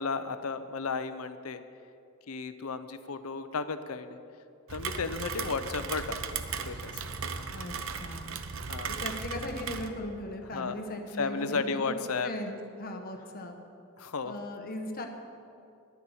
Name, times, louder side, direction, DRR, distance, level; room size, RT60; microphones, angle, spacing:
voice 1, 0.0-1.6 2.3-4.2 4.7-7.0 8.7-8.9 10.5-10.7 11.2-12.3 14.0-14.3, left 4 dB, 80° left, 11 dB, 0.7 m, -34 dB
Rain, 4.7-9.9, right 5 dB, 60° right, 0.8 m, -36 dB
voice 2, 8.0-8.4 8.9-13.6 14.2-15.1, left 1 dB, 40° left, 4 dB, 1.2 m, -38 dB
10.5 x 10.0 x 7.2 m, 2.5 s
head